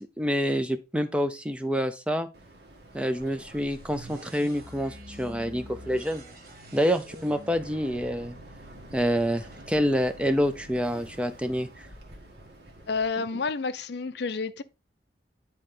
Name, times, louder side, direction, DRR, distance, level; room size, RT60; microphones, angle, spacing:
voice 1, 0.0-2.3 2.9-6.2 6.7-8.4 8.9-11.9, equal, 5° right, 0.5 m, -27 dB
Boat Water vehicle, 2.3-13.1, right 1 dB, 65° right, 1.9 m, -49 dB
sound 1, 3.2-11.1, equal, 50° right, 1.5 m, -48 dB
voice 2, 12.9-14.6, left 4 dB, 65° left, 0.5 m, -30 dB
9.6 x 4.4 x 3.8 m
head